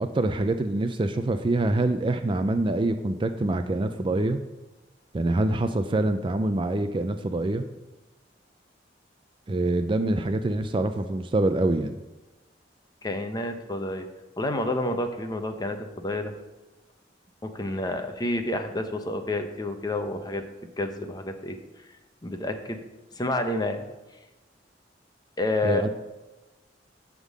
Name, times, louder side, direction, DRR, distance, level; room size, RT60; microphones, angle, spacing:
voice 1, 0.0-4.4 5.1-7.6 9.5-12.0 25.6-25.9, right 2 dB, 30° right, 8 dB, 0.4 m, -25 dB
voice 2, 13.0-14.1 14.4-16.3 17.4-20.4 20.8-21.6 22.2-22.8 23.1-23.8 25.4-25.9, left 2 dB, 20° left, 6 dB, 0.8 m, -29 dB
9.9 x 3.7 x 7.3 m, 1.1 s
head